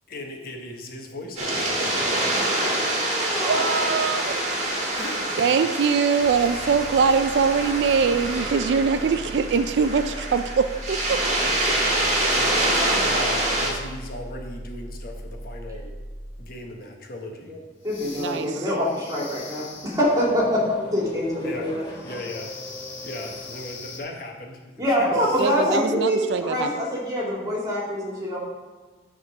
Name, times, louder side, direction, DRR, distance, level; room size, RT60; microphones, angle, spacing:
voice 1, 0.1-2.6 4.9-5.7 11.2-11.3 12.0-12.6 13.0-15.9 16.4-17.6 21.4-21.7 22.0-22.5 23.0-25.5, left 1 dB, 50° left, 2 dB, 1.1 m, -38 dB
sound 1, 1.4-13.7, right 1 dB, 40° right, 1.6 m, -26 dB
voice 2, 2.8-4.0 17.5-17.6 17.8-21.8 24.8-28.4, equal, 20° right, -5 dB, 2.3 m, -25 dB
voice 3, 3.4-4.2 5.4-11.2 18.2-18.6 25.4-26.7, right 5 dB, 70° right, 10 dB, 0.4 m, -22 dB
sound 2, 6.2-16.6 17.8-20.2 21.9-24.0, equal, 75° left, 1.4 m, -39 dB
Race car auto racing / Accelerating revving vroom, 18.9-24.4, left 2 dB, 25° left, 1.3 m, -42 dB
9.8 x 3.7 x 6.2 m, 1.3 s
head